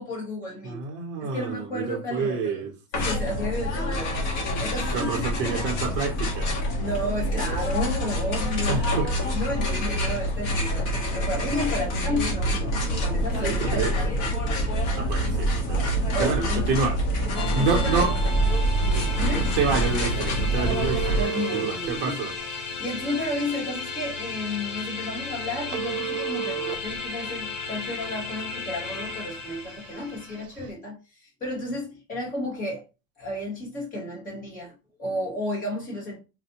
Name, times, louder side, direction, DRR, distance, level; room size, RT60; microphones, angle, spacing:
voice 1, 0.0-0.8 1.2-2.6 2.9-5.6 6.8-8.8 9.3-14.3 14.9-15.1 16.1-16.6 17.5-18.1 19.2-19.5 21.2-22.2 22.8-32.8 33.2-36.2, left 1 dB, 20° left, 1.3 m, -32 dB
voice 2, 0.6-2.7 4.9-6.5 8.7-9.1 13.4-13.9 14.9-17.0 17.5-18.1 18.9-19.1 19.6-22.3, right 5 dB, 30° right, 0.8 m, -28 dB
sound 1, 2.9-21.2, equal, 45° left, 1.1 m, -26 dB
sound 2, 17.3-30.4, left 4 dB, 65° left, 1.2 m, -35 dB
Telephone, 18.2-30.7, right 9 dB, 65° right, 0.7 m, -37 dB
4.1 x 2.1 x 2.9 m
supercardioid pair, 170°, 41 cm